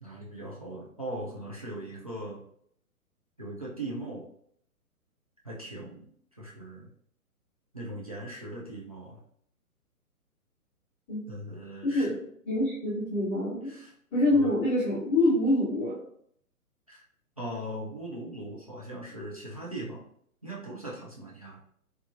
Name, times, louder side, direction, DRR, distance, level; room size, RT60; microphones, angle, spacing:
voice 1, 0.0-2.4 3.4-4.3 5.4-6.1 6.4-6.9 7.7-9.2 11.3-12.1 13.6-13.9 14.3-14.6 16.9-17.0 17.4-20.1 20.4-21.6, right 1 dB, 25° right, -5 dB, 0.4 m, -39 dB
voice 2, 12.4-13.7 14.1-16.0, left 1 dB, 15° left, -11 dB, 1.2 m, -25 dB
3.5 x 2.9 x 2.6 m, 0.67 s
figure-of-eight pair, 130°, 45 cm